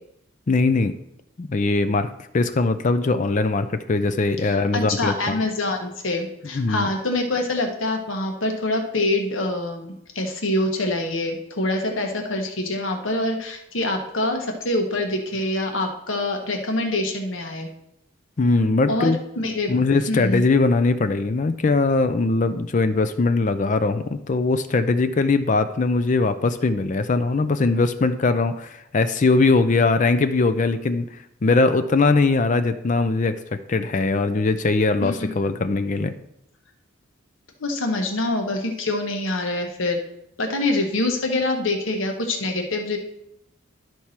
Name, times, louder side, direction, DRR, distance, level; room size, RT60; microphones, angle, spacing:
voice 1, 0.5-0.9 1.4-5.4 6.5-6.9 18.4-19.2 19.7-36.1, left 3 dB, 40° left, 10 dB, 0.4 m, -21 dB
voice 2, 4.4-17.7 18.9-19.1 19.4-19.7 20.1-20.4 35.0-35.3 37.6-40.0 40.4-43.0, left 2 dB, 80° left, 3 dB, 1.4 m, -25 dB
12.0 x 4.7 x 4.3 m, 0.78 s
head